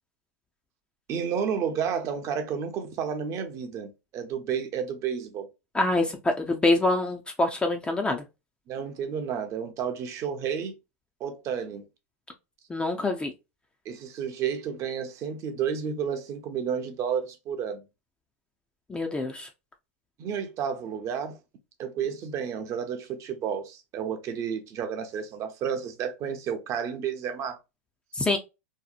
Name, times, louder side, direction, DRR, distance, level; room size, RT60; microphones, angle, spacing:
voice 1, 1.1-5.5 8.7-10.7 11.2-11.8 13.9-17.8 20.2-21.4 21.8-27.6, right 7 dB, 40° right, 0.6 m, -31 dB
voice 2, 5.7-8.2 12.7-13.3 18.9-19.5 28.2-28.4, left 2 dB, 10° left, 0.4 m, -25 dB
2.7 x 2.0 x 2.3 m
hypercardioid pair, 120°, 8 cm